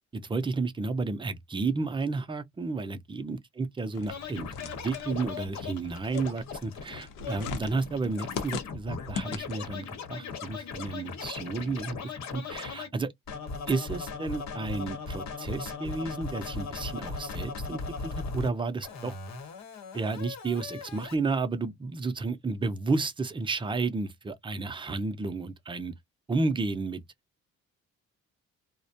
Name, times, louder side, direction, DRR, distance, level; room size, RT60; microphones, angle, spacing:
voice 1, 0.1-12.0 12.3-13.1 13.7-19.1 19.9-25.9 26.3-27.0, right 3 dB, 15° right, 0.5 m, -32 dB
sound 1, 3.9-9.8, left 6 dB, 90° left, 0.8 m, -40 dB
Scratching (performance technique), 4.1-12.9 13.3-18.5 18.8-21.2, left 4 dB, 65° left, 1.0 m, -38 dB
2.3 x 2.1 x 2.6 m
cardioid pair, 90°, 30 cm